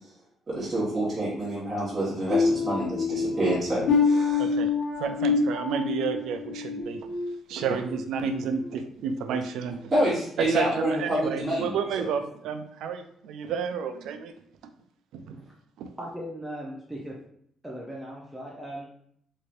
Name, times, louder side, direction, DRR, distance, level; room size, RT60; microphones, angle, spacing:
voice 1, 0.5-4.5 9.9-11.7, right 1 dB, 35° right, -9 dB, 1.2 m, -27 dB
sound 1, 2.3-8.0 8.4-8.7 9.2-9.4, left 4 dB, 80° left, 0.8 m, -27 dB
voice 2, 4.4-4.7 5.0-7.1 7.5-9.9 10.4-14.3 15.1-15.4 15.8-15.9, right 6 dB, 80° right, 8 dB, 0.3 m, -31 dB
voice 3, 16.0-17.1 17.6-18.9, equal, 10° right, -4 dB, 0.6 m, -38 dB
3.2 x 2.8 x 2.5 m, 0.66 s
cardioid pair, 95°, 0 cm